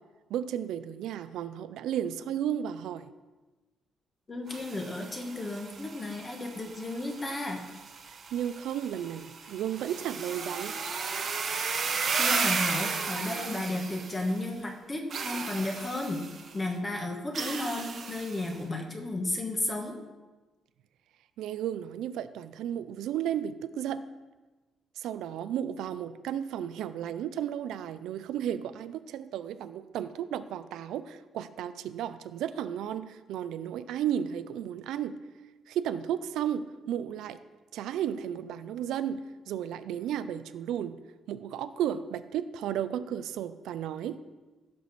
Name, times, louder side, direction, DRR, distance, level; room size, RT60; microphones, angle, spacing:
voice 1, 0.3-3.1 8.3-10.8 21.4-24.0 25.0-35.2 35.7-37.4 37.7-41.0 41.3-44.2, right 10 dB, 85° right, 12 dB, 0.5 m, -33 dB
voice 2, 4.3-7.6 12.2-16.2 16.5-20.0, left 2 dB, 20° left, 3 dB, 1.3 m, -33 dB
sound 1, 4.5-14.5 15.1-16.5 17.3-18.6, right 5 dB, 35° right, 1.1 m, -34 dB
16.0 x 6.2 x 4.2 m, 1.2 s
cardioid pair, 165°, 0 cm